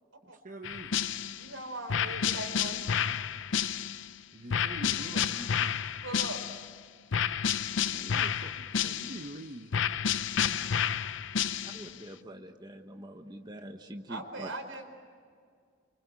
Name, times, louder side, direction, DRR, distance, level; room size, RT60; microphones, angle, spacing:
voice 1, 0.4-1.0 4.3-5.8 7.9-9.8, right 2 dB, 40° right, 5 dB, 0.9 m, -44 dB
sound 1, 0.6-1.5 1.9-4.1 4.5-6.7 7.1-9.3 9.7-11.9, left 8 dB, 70° left, 0.6 m, -30 dB
voice 2, 1.4-2.9 6.0-6.4 8.6-8.7 11.5-12.1 14.1-14.8, right 2 dB, 90° right, 5 dB, 4.5 m, -41 dB
voice 3, 11.6-14.5, right 1 dB, 20° right, 4 dB, 1.3 m, -45 dB
30.0 x 25.0 x 8.1 m, 2.1 s
head